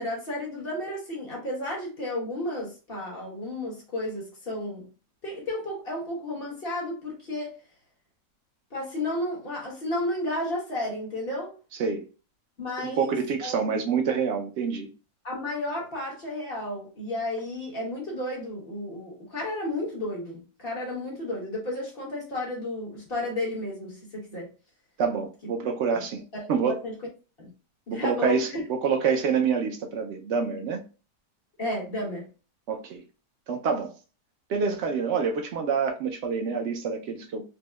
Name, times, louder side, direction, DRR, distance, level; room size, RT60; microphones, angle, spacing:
voice 1, 0.0-4.9 5.2-7.6 8.7-11.5 12.6-13.1 13.4-13.5 15.2-24.5 25.8-26.0 26.3-26.9 27.4-27.5 27.9-28.6 31.6-32.3, left 1 dB, 40° left, 1.2 m, -32 dB
voice 2, 12.8-14.9 25.0-26.2 26.5-26.8 27.9-30.8 32.7-33.0 33.5-33.9 34.5-37.4, right 6 dB, 85° right, 0.6 m, -27 dB
4.3 x 2.1 x 2.2 m
omnidirectional pair, 1.8 m